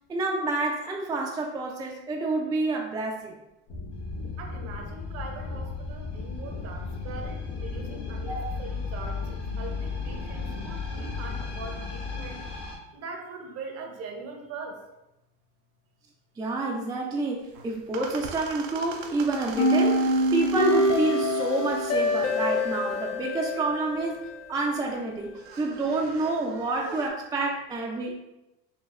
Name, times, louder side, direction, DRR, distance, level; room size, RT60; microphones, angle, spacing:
voice 1, 0.1-3.4 8.3-8.4 16.4-24.2 24.5-25.3 25.6-28.1, right 2 dB, 15° right, -1 dB, 0.4 m, -28 dB
sound 1, 3.7-12.8, left 4 dB, 75° left, 1.0 m, -34 dB
voice 2, 4.4-12.4 12.9-14.8, right 4 dB, 50° right, 3 dB, 0.7 m, -41 dB
sound 2, 17.4-27.1, right 5 dB, 90° right, 0.5 m, -43 dB
sound 3, 19.6-24.6, left 1 dB, 50° left, 0.6 m, -25 dB
4.0 x 2.2 x 2.4 m, 0.92 s
supercardioid pair, 105°, 31 cm